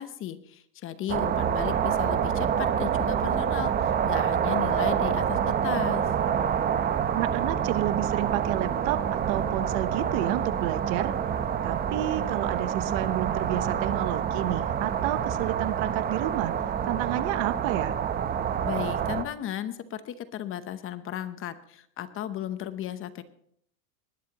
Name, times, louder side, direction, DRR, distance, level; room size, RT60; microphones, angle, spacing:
voice 1, 0.0-6.1 18.6-23.2, left 11 dB, 30° left, 12 dB, 0.8 m, -35 dB
sound 1, 1.1-19.2, right 8 dB, 20° right, 0.8 m, -27 dB
voice 2, 7.1-11.1 11.6-18.0, right 14 dB, 50° right, 13 dB, 1.0 m, -30 dB
20.5 x 11.5 x 2.9 m, 0.65 s
supercardioid pair, 135°, 45 cm